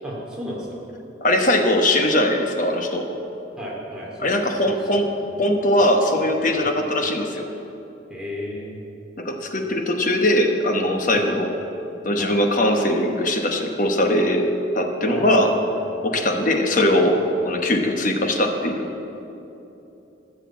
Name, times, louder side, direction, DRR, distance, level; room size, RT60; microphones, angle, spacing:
voice 1, 0.0-0.8 3.6-4.3 4.6-5.1 5.4-5.5 6.6-6.7 8.1-8.8 11.1-11.4 12.2-12.4 15.1-15.8 16.1-16.3 17.8-18.0, equal, 5° right, -5 dB, 2.6 m, -33 dB
voice 2, 1.2-3.1 4.2-5.0 5.4-7.5 9.2-11.5 12.0-14.5 14.7-15.5 16.0-17.2 17.4-18.9, left 1 dB, 40° left, 4 dB, 1.1 m, -20 dB
15.0 x 6.8 x 7.4 m, 3.0 s
head